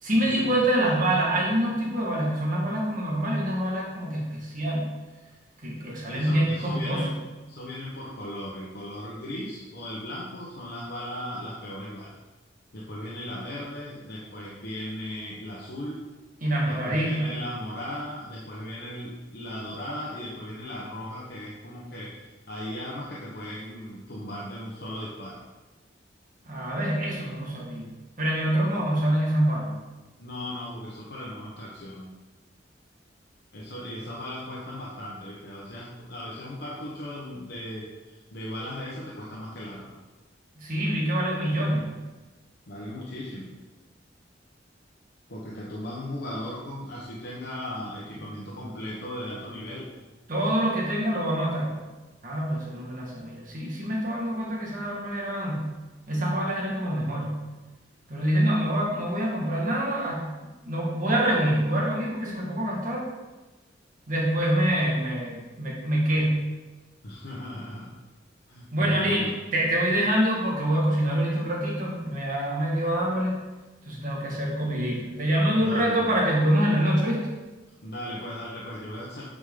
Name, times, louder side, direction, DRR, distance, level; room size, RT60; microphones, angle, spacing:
voice 1, 0.0-4.9 5.6-7.1 16.4-17.3 26.4-27.9 28.2-29.7 40.6-41.8 50.3-51.8 52.2-55.7 56.1-57.3 58.1-60.2 60.6-63.0 64.1-66.4 68.7-73.4 73.8-77.2, right 1 dB, 45° right, -3 dB, 1.8 m, -25 dB
voice 2, 6.1-7.2 7.5-12.1 12.7-16.0 16.6-25.5 30.2-32.1 33.5-40.0 42.7-43.5 45.3-49.9 67.0-68.0 68.5-69.4 75.5-76.1 77.8-79.2, left 1 dB, 60° left, -5 dB, 1.2 m, -37 dB
9.1 x 5.0 x 3.9 m, 1.2 s
head